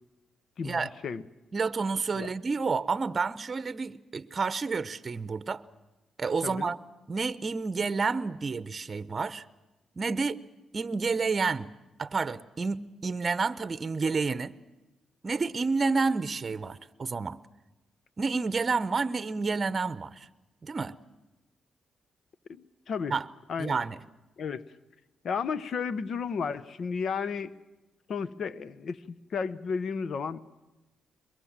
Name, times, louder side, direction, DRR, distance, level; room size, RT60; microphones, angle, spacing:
voice 1, 0.6-1.2 2.1-2.3 6.4-6.7 22.9-23.1 23.5-23.8 24.4-24.6 25.2-27.5 28.1-30.4, left 6 dB, 65° left, 16 dB, 0.9 m, -33 dB
voice 2, 1.5-5.6 6.2-6.8 7.1-9.4 10.0-10.4 10.7-11.7 12.0-14.6 15.2-17.4 18.2-20.3 20.6-20.9 23.1-23.2 23.6-24.0, right 4 dB, 40° right, 15 dB, 0.9 m, -29 dB
22.5 x 22.5 x 7.4 m, 1.1 s
cardioid pair, 65°, 0 cm